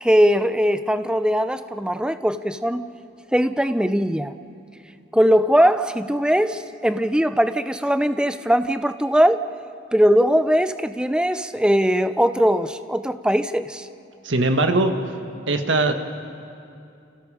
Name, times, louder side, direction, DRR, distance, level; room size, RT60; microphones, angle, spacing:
voice 1, 0.0-2.8 3.3-4.3 5.1-9.5 9.9-13.9, equal, 5° right, 11 dB, 0.6 m, -20 dB
voice 2, 14.2-14.9 15.5-15.9, right 2 dB, 85° right, 6 dB, 1.6 m, -20 dB
29.5 x 29.0 x 5.0 m, 2.6 s
head